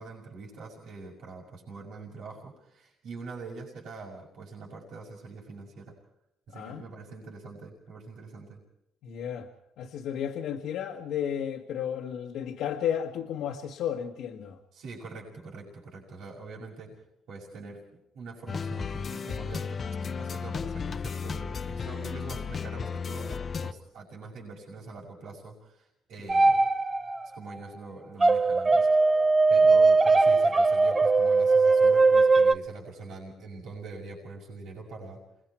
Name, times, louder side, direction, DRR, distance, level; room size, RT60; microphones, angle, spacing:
voice 1, 0.0-5.9 6.5-8.6 14.7-17.0 17.3-26.7 27.3-28.9 29.5-35.2, right 3 dB, 75° right, -4 dB, 5.9 m, -44 dB
voice 2, 6.5-6.9 9.0-9.5 9.8-14.6, left 9 dB, 80° left, 0 dB, 1.7 m, -33 dB
sound 1, 18.5-23.7, left 5 dB, 45° left, 0.9 m, -34 dB
sound 2, 26.3-27.3 28.2-32.5, right 3 dB, 25° right, 0.9 m, -20 dB
28.0 x 21.0 x 4.6 m, 0.81 s
cardioid pair, 80°, 0 cm